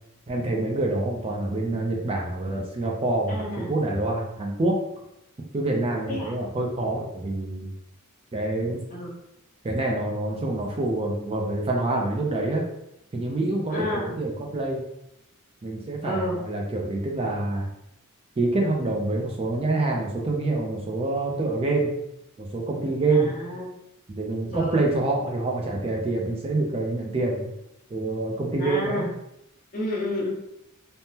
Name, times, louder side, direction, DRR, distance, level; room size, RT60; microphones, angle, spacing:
voice 1, 0.3-4.8 5.5-7.7 8.3-8.8 9.6-12.6 13.1-14.8 15.6-17.7 18.4-21.9 22.4-23.3 24.1-27.5 27.9-29.0, right 2 dB, 25° right, -1 dB, 0.4 m, -26 dB
voice 2, 3.3-3.7 6.1-6.3 8.9-9.1 13.7-14.1 16.0-16.4 23.1-23.7 24.5-24.8 28.6-29.1 29.7-30.3, left 1 dB, 40° left, -4 dB, 0.9 m, -30 dB
3.5 x 2.0 x 2.7 m, 0.81 s
head